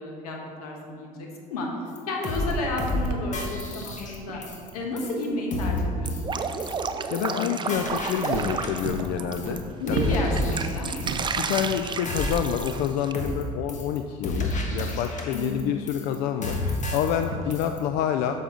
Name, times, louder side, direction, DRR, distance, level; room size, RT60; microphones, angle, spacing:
voice 1, 0.0-1.7 2.1-4.4 4.7-6.4 7.1-7.6 9.8-10.9 15.3-15.7, left 2 dB, 90° left, 0 dB, 1.2 m, -31 dB
sound 1, 2.0-2.1 2.2-2.5 2.8-3.1 3.3-4.7 5.0-5.2 5.5-5.8 6.1-6.3 6.6-6.9 7.1-7.4 7.7-9.1 9.3-9.6 9.9-11.2 11.5-11.8 12.1-12.9 13.1-13.4 13.7-14.0 14.2-15.6 15.9-16.2 16.4-17.2 17.5-17.8, left 2 dB, 40° left, 1.4 m, -31 dB
sound 2, 2.9-3.5 3.8-5.0 7.5-13.0 16.4-16.8 17.3-17.6, right 4 dB, 75° right, 0.7 m, -35 dB
Drip, 6.0-9.6 10.0-13.1, right 5 dB, 25° right, 0.4 m, -32 dB
voice 2, 6.8-10.1 11.4-18.3, left 9 dB, 65° left, 7 dB, 0.4 m, -28 dB
7.1 x 6.4 x 3.8 m, 2.3 s
hypercardioid pair, 70°, 19 cm